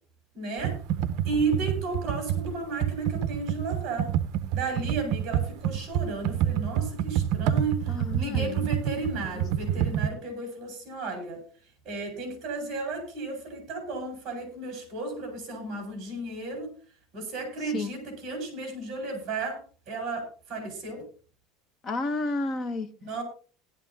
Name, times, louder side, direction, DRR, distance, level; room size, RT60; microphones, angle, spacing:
voice 1, 0.3-0.8 1.2-4.1 4.5-11.4 11.8-16.7 17.1-19.6 19.9-21.0 23.0-23.2, right 3 dB, 30° right, 5 dB, 5.2 m, -33 dB
Computer keyboard, 0.6-10.1, right 10 dB, 50° right, 0.7 m, -28 dB
voice 2, 7.9-8.6 17.7-17.9 21.8-22.9, left 2 dB, 25° left, 8 dB, 0.9 m, -31 dB
18.0 x 11.5 x 2.8 m, 0.40 s
cardioid pair, 170°, 0 cm